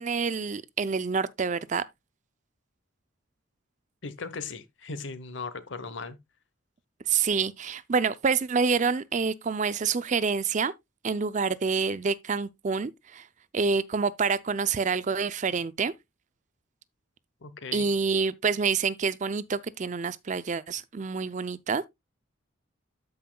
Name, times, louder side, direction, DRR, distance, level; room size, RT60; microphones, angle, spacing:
voice 1, 0.0-1.8 7.1-10.7 11.0-13.3 13.5-15.9 17.7-21.9, right 5 dB, 35° right, 0.4 m, -27 dB
voice 2, 4.0-6.2 17.4-17.9, left 4 dB, 60° left, 1.0 m, -38 dB
13.5 x 5.5 x 2.2 m
head